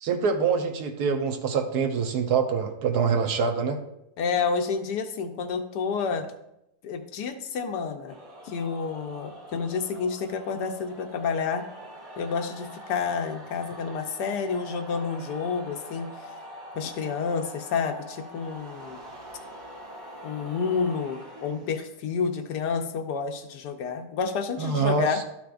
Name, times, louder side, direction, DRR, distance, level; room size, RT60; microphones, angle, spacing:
voice 1, 0.0-3.8 24.6-25.2, right 5 dB, 70° right, 5 dB, 1.3 m, -25 dB
voice 2, 4.2-6.2 6.8-8.2 8.4-11.6 12.2-16.1 16.7-19.0 20.2-25.2, left 5 dB, 75° left, 7 dB, 1.3 m, -29 dB
sound 1, 8.1-22.2, equal, 55° right, 2.2 m, -44 dB
13.0 x 5.8 x 2.5 m, 0.84 s
omnidirectional pair, 1.8 m